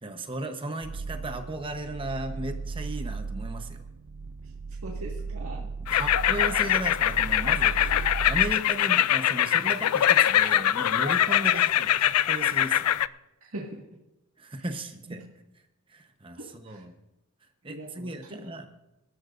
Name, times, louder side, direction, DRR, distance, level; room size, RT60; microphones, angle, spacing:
voice 1, 0.0-3.9 5.9-12.9 14.4-15.2 15.9-17.0 17.6-18.7, right 1 dB, 25° right, 6 dB, 1.0 m, -36 dB
sound 1, 0.8-8.5, right 4 dB, 50° right, 0.4 m, -36 dB
voice 2, 4.8-5.6 13.4-13.7 15.1-15.2 16.4-16.8 17.6-18.5, right 1 dB, 75° right, -2 dB, 1.9 m, -41 dB
sound 2, 5.9-13.1, left 12 dB, 85° left, 0.4 m, -23 dB
23.5 x 12.5 x 2.6 m, 0.94 s
head